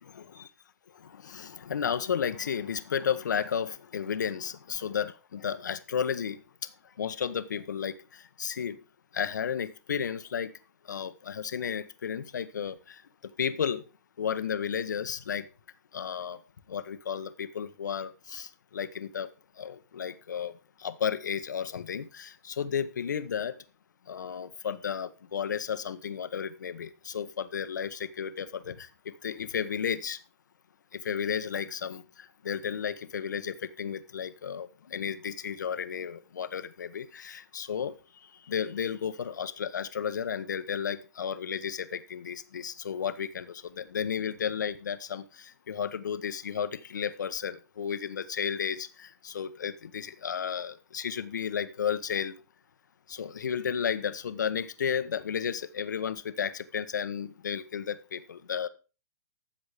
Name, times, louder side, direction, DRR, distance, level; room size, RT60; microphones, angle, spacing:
voice 1, 0.0-0.5 0.9-6.7 7.0-8.8 9.1-10.5 10.9-13.8 14.2-15.4 15.9-16.4 16.7-19.3 19.6-23.5 24.1-30.2 30.9-37.9 38.2-52.3 53.1-58.7, left 7 dB, 75° left, 12 dB, 1.3 m, -33 dB
13.0 x 7.5 x 5.0 m, 0.32 s
hypercardioid pair, 135°, 10 cm